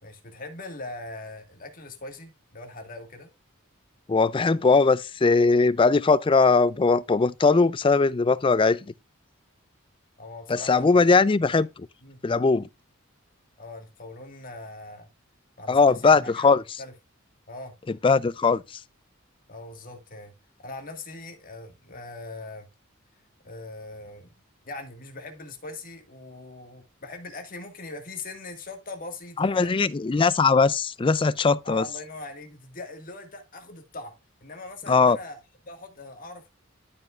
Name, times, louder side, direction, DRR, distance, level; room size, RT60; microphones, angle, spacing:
voice 1, 0.0-3.3 10.2-11.0 11.4-11.6 12.0-12.2 13.6-15.1 15.6-16.9 17.5-17.7 19.5-20.3 20.6-22.7 23.4-24.3 24.6-29.8 31.6-34.1 34.4-36.5, left 2 dB, 40° left, 1.7 m, -41 dB
voice 2, 4.1-8.8 10.5-11.7 12.2-12.7 15.7-16.6 17.9-18.6 29.4-31.8 34.9-35.2, left 4 dB, 25° left, 0.4 m, -20 dB
12.5 x 5.2 x 2.4 m
head